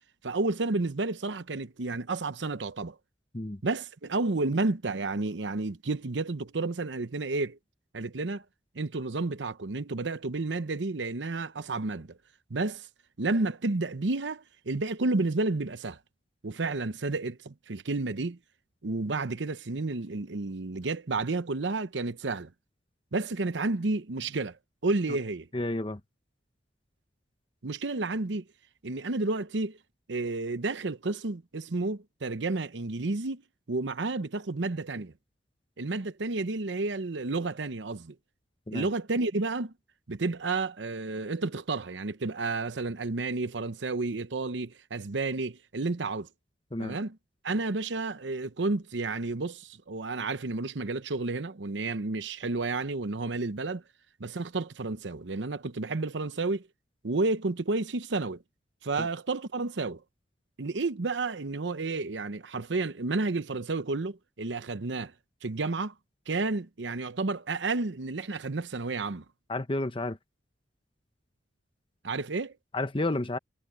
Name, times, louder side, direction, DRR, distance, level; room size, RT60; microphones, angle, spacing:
voice 1, 0.2-3.0 3.6-7.6 7.9-8.4 8.7-12.2 12.5-12.9 13.2-16.0 16.4-18.4 18.8-22.5 23.1-24.6 24.8-25.5 27.6-28.4 28.8-29.8 30.1-33.4 33.7-35.1 35.8-38.1 38.7-39.7 40.1-46.3 46.8-47.2 47.4-53.8 54.2-56.7 57.0-58.4 58.8-60.0 60.6-65.1 65.4-65.9 66.3-69.2 72.0-72.5, right 3 dB, 80° right, 0.8 m, -31 dB
voice 2, 25.5-26.0 38.7-38.9 46.7-47.0 59.0-59.1 69.5-70.2 72.7-73.4, left 2 dB, 30° left, 1.1 m, -31 dB
head